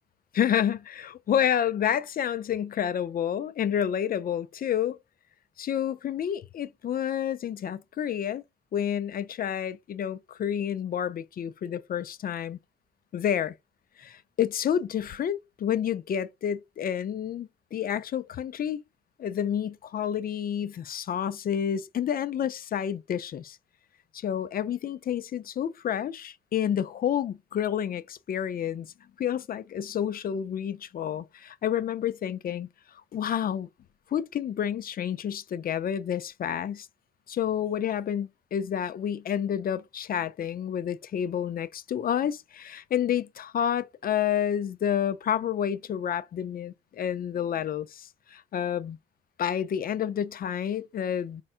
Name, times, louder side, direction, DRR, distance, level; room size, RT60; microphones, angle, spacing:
voice 1, 0.3-5.0 5.6-8.4 8.7-12.6 13.1-13.5 14.0-18.8 19.2-23.6 24.1-32.7 33.1-33.7 34.1-36.9 37.3-49.0 49.4-51.4, left 9 dB, 45° left, 0.5 m, -29 dB
4.6 x 4.3 x 2.5 m
cardioid pair, 90°, 20 cm